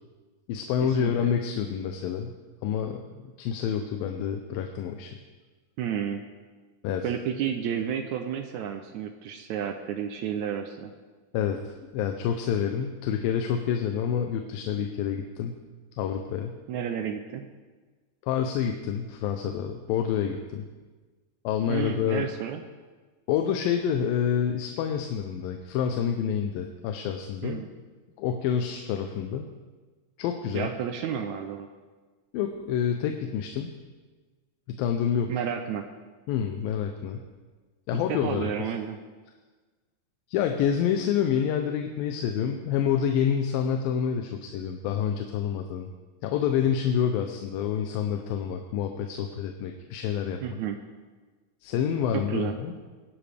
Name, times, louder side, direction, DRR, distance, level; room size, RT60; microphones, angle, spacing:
voice 1, 0.5-2.3 2.6-5.2 6.8-7.1 11.3-15.5 16.0-16.5 18.2-20.7 21.4-22.3 23.3-27.6 28.2-29.5 30.2-30.7 32.3-33.7 34.7-35.3 36.3-37.2 37.9-38.5 40.3-45.9 46.2-50.6 51.6-52.7, left 8 dB, 85° left, 5 dB, 2.5 m, -28 dB
voice 2, 5.8-6.2 7.0-10.9 16.7-17.5 21.7-22.6 27.4-27.7 30.5-31.7 35.3-35.8 37.9-39.0 50.4-50.8 52.1-52.6, right 8 dB, 80° right, 6 dB, 1.7 m, -31 dB
21.0 x 11.0 x 3.4 m, 1.3 s
omnidirectional pair, 4.0 m